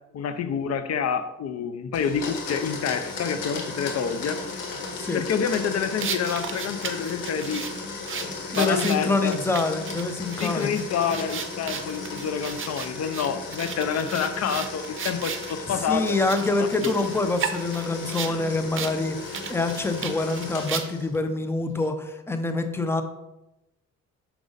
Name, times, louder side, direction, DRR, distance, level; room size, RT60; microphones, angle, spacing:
voice 1, 0.1-4.4 5.1-7.6 8.5-9.4 10.4-16.2 16.6-16.9 18.2-18.4, left 7 dB, 55° left, 10 dB, 0.6 m, -28 dB
Domestic sounds home sounds, 1.9-21.1, left 4 dB, 90° left, 1.5 m, -36 dB
sound 1, 6.0-15.5 16.0-18.4 18.7-18.9 19.2-21.2, right 7 dB, 45° right, 0.7 m, -35 dB
voice 2, 8.5-10.7 15.8-23.0, left 3 dB, 10° left, 7 dB, 0.7 m, -26 dB
6.1 x 5.1 x 3.9 m, 0.94 s
cardioid pair, 90°, 30 cm